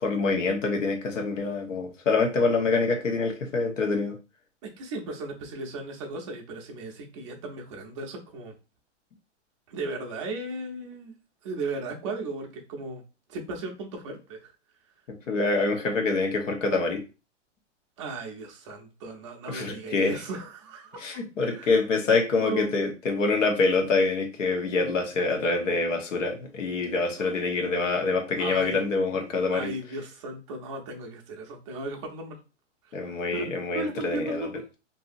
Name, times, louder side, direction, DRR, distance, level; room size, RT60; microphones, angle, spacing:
voice 1, 0.0-4.2 15.3-17.0 19.5-20.2 21.0-29.7 32.9-34.5, left 3 dB, 85° left, 3 dB, 1.0 m, -26 dB
voice 2, 4.8-8.5 9.7-11.1 11.4-13.0 13.3-14.5 18.0-21.8 22.3-22.8 27.2-27.3 28.3-28.8 29.5-32.4 33.0-33.4 33.7-34.7, right 2 dB, 25° right, 1 dB, 0.5 m, -36 dB
2.6 x 2.6 x 2.4 m, 0.31 s
hypercardioid pair, 150°, 37 cm